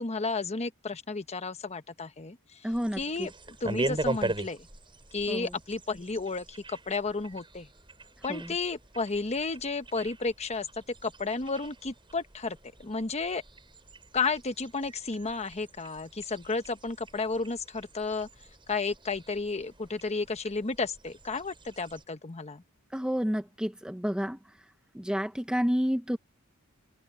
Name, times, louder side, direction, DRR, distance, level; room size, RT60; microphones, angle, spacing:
voice 1, 0.0-4.7 5.1-7.7 8.2-10.7 11.0-13.4 14.1-18.3 18.7-22.6, left 4 dB, 30° left, 1.1 m, -32 dB
voice 2, 2.6-3.0 5.3-5.5 8.3-8.5 22.9-24.4 24.9-26.2, equal, 5° right, 0.8 m, -29 dB
sound 1, 2.7-22.0, right 2 dB, 25° right, 7.2 m, -41 dB
head